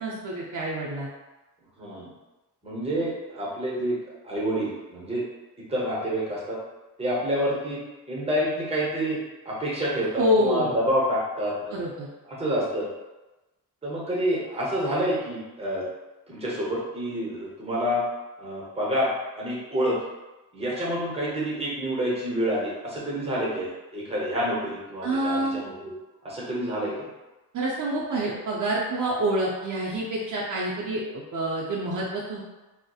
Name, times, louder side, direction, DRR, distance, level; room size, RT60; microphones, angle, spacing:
voice 1, 0.0-1.1 10.2-10.7 11.7-12.1 25.0-25.6 27.5-32.4, right 1 dB, 55° right, -4 dB, 0.5 m, -27 dB
voice 2, 1.8-2.1 2.6-5.2 5.7-6.6 7.0-7.8 8.1-9.2 9.4-11.8 12.2-12.9 13.8-15.8 16.3-18.0 18.4-20.0 20.5-25.9 26.2-27.1, equal, 15° right, -5 dB, 0.7 m, -28 dB
2.7 x 2.0 x 2.3 m, 1.1 s
wide cardioid pair, 130°, 36 cm